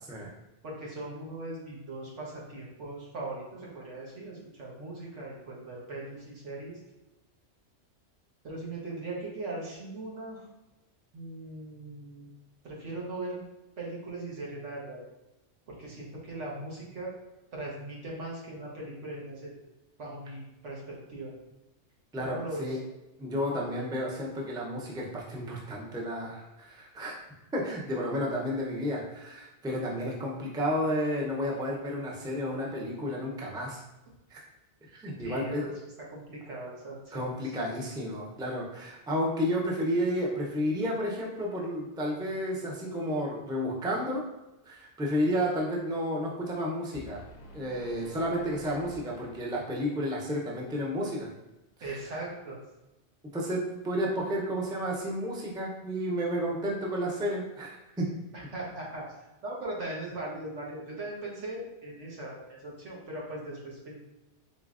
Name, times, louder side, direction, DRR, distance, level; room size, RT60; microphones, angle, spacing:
voice 1, 0.6-6.8 8.4-10.4 11.1-12.3 12.6-13.4 13.8-15.0 15.7-17.1 17.5-19.6 20.0-21.3 22.3-22.8 35.2-35.7 36.1-37.3 51.8-52.6 58.3-59.1 59.4-64.0, right 2 dB, 85° right, -3 dB, 1.4 m, -39 dB
voice 2, 22.1-22.8 23.2-27.2 27.5-33.8 34.3-34.4 34.9-35.7 37.1-44.2 44.7-47.2 47.5-51.3 53.3-58.1, equal, 5° right, -2 dB, 0.3 m, -31 dB
sound 1, 46.9-50.0, left 1 dB, 60° left, 0.4 m, -49 dB
4.0 x 3.7 x 2.4 m, 0.99 s
omnidirectional pair, 1.2 m